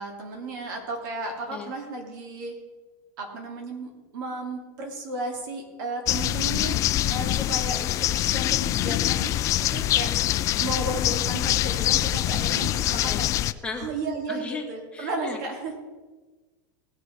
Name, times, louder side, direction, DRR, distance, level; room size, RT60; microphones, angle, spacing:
voice 1, 0.0-2.6 3.2-10.3 10.6-13.5 13.8-15.8, right 2 dB, 70° right, 2 dB, 3.0 m, -34 dB
sound 1, 6.1-13.5, left 13 dB, 30° left, 0.4 m, -24 dB
voice 2, 12.9-13.2 13.6-13.9 14.3-14.6 14.9-15.4, left 4 dB, 10° left, 0 dB, 1.6 m, -36 dB
18.0 x 6.6 x 4.7 m, 1.3 s
supercardioid pair, 155°, 11 cm